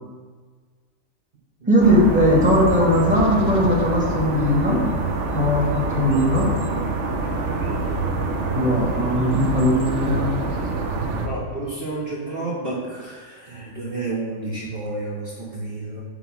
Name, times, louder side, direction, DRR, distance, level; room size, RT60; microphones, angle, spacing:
voice 1, 1.7-4.9 5.3-6.5 8.5-10.3, equal, 5° right, -6 dB, 1.9 m, -19 dB
sound 1, 1.8-11.3, right 3 dB, 70° right, 1.2 m, -26 dB
voice 2, 11.2-16.0, right 2 dB, 45° right, -4 dB, 1.4 m, -30 dB
7.5 x 4.1 x 6.2 m, 1.5 s
omnidirectional pair, 1.3 m